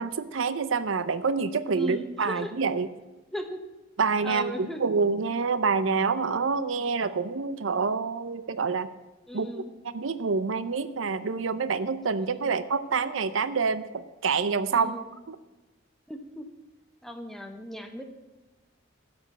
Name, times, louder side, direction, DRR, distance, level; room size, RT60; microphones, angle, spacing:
voice 1, 0.0-2.9 4.0-8.9 9.3-15.4, right 5 dB, 70° right, 14 dB, 0.6 m, -27 dB
voice 2, 1.7-2.5 3.3-3.6 4.2-4.8 9.3-9.7 12.4-12.5 14.7-15.1 16.1-16.5 17.0-18.0, equal, ahead, 5 dB, 1.1 m, -37 dB
12.5 x 7.9 x 8.0 m, 1.1 s
head